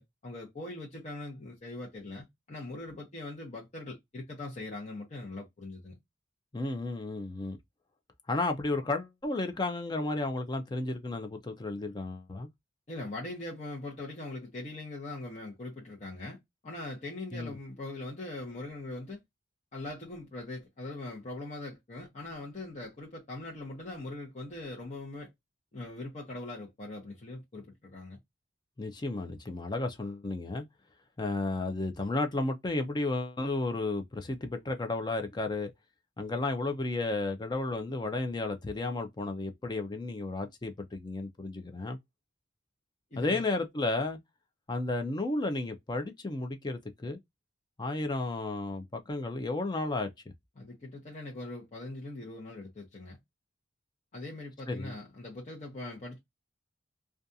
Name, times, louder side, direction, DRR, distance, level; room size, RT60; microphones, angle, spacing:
voice 1, 0.0-6.0 12.9-16.4 16.6-19.2 19.7-25.3 25.7-28.2 43.1-43.4 50.6-53.2 54.1-56.2, left 2 dB, 40° left, 0.8 m, -41 dB
voice 2, 6.5-7.6 8.3-12.5 17.3-17.6 28.8-30.6 31.2-35.7 36.2-42.0 43.2-44.2 44.7-47.2 47.8-50.1 54.7-54.9, left 2 dB, 20° left, 0.4 m, -33 dB
2.4 x 2.3 x 2.6 m
head